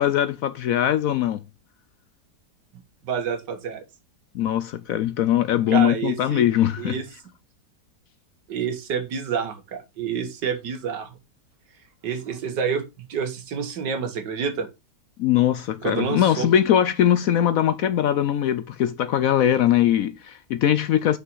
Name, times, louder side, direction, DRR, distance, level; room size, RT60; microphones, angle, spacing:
voice 1, 0.0-1.4 4.3-7.0 15.2-21.2, left 11 dB, 70° left, 0.8 m, -21 dB
voice 2, 3.0-3.8 5.7-6.4 6.8-7.1 8.5-11.2 12.0-14.7 15.8-16.5, right 6 dB, 80° right, 1.9 m, -28 dB
5.9 x 5.7 x 5.4 m
omnidirectional pair, 1.8 m